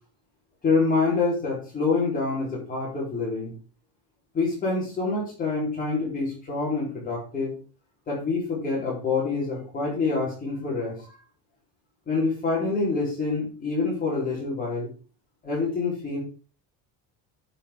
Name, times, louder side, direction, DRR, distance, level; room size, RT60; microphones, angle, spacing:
voice 1, 0.6-3.5 4.3-7.6 8.1-11.0 12.1-14.9 15.4-16.2, left 3 dB, 25° left, -5 dB, 4.3 m, -26 dB
11.0 x 5.7 x 5.2 m, 0.38 s
cardioid pair, 175°, 36 cm